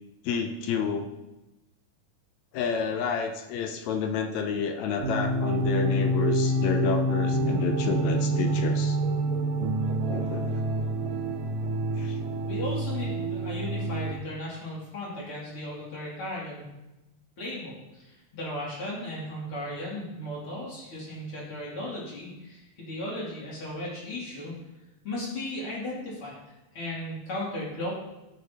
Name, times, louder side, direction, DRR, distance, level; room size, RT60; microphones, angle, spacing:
voice 1, 0.2-1.1 2.5-9.0 10.1-10.6 12.0-12.2, left 6 dB, 75° left, 6 dB, 1.7 m, -30 dB
sound 1, 5.0-14.2, right 1 dB, 85° right, 2.5 m, -27 dB
voice 2, 12.5-16.6 17.4-24.5 25.0-26.4 26.7-27.9, left 1 dB, 45° left, -6 dB, 3.1 m, -36 dB
13.0 x 6.3 x 2.8 m, 0.97 s
omnidirectional pair, 3.7 m